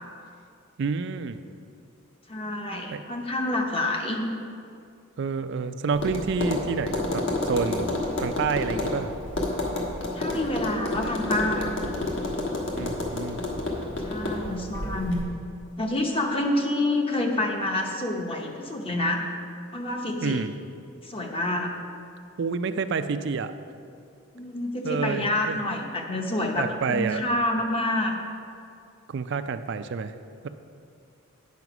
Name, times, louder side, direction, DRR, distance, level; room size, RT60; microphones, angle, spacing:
voice 1, 0.8-1.4 2.9-3.0 5.2-7.9 8.2-9.1 12.7-13.4 20.2-20.5 22.4-23.5 24.8-25.6 26.6-27.2 29.1-30.1, right 5 dB, 55° right, 10 dB, 0.4 m, -28 dB
voice 2, 2.3-4.2 10.1-11.6 14.0-15.2 15.8-19.2 19.7-20.4 21.0-21.7 24.3-28.1, left 1 dB, 25° left, 2 dB, 0.8 m, -27 dB
Tap, 5.9-15.2, left 2 dB, 55° left, 1.3 m, -30 dB
9.4 x 5.0 x 6.0 m, 2.4 s
head